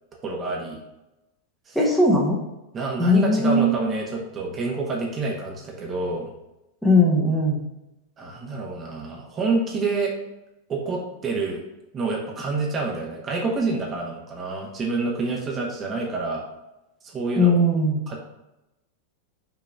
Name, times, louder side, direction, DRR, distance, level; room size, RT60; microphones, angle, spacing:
voice 1, 0.2-0.8 1.7-1.8 2.7-6.3 8.2-10.1 10.7-11.6 11.9-16.4 17.0-17.6 18.1-18.2, right 3 dB, 25° right, -1 dB, 1.3 m, -27 dB
voice 2, 1.7-2.4 3.0-3.8 6.8-7.6 17.4-18.0, left 1 dB, ahead, -3 dB, 1.3 m, -19 dB
5.8 x 3.8 x 5.2 m, 0.95 s
figure-of-eight pair, 90°, 0 cm